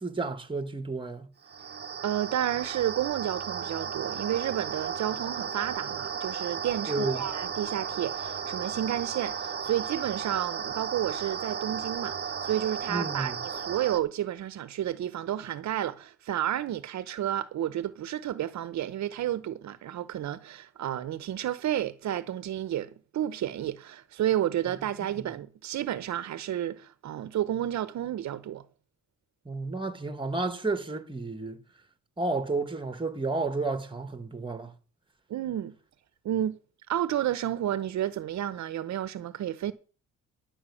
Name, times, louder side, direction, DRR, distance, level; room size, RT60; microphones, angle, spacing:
voice 1, 0.0-1.3 6.9-7.2 12.9-13.4 29.4-31.6 32.2-34.7, right 3 dB, 15° right, 1.5 m, -31 dB
sound 1, 1.4-14.0, right 7 dB, 35° right, 1.0 m, -35 dB
voice 2, 2.0-28.7 35.3-35.7 36.2-36.6 36.9-39.7, right 11 dB, 65° right, 0.9 m, -31 dB
11.5 x 5.9 x 8.4 m
cardioid pair, 90°, 30 cm